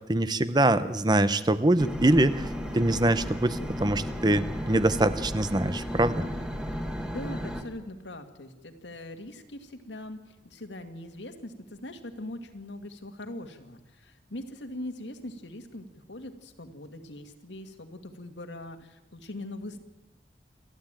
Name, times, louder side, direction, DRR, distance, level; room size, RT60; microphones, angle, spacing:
voice 1, 0.1-2.5 2.7-6.2, right 1 dB, 25° right, 13 dB, 0.8 m, -24 dB
sound 1, 1.8-7.6, equal, 5° right, 1.7 m, -34 dB
voice 2, 6.8-19.8, left 1 dB, 85° left, 6 dB, 2.1 m, -41 dB
28.0 x 12.0 x 9.0 m, 1.0 s
head